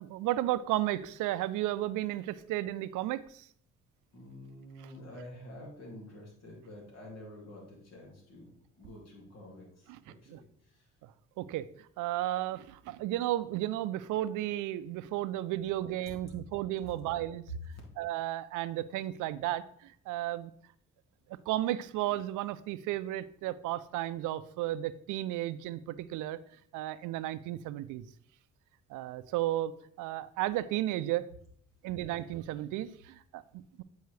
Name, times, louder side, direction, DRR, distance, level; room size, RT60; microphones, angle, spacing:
voice 1, 0.0-3.5 9.9-10.0 10.3-10.4 11.4-11.7 12.0-17.4 18.0-20.5 21.5-26.4 26.7-28.0 28.9-31.2 31.8-33.8, right 14 dB, 90° right, 14 dB, 0.5 m, -33 dB
voice 2, 4.1-10.9 16.3-16.4, left 1 dB, 60° left, -2 dB, 2.5 m, -49 dB
8.1 x 4.6 x 3.2 m, 0.63 s
cardioid pair, 90°, 30 cm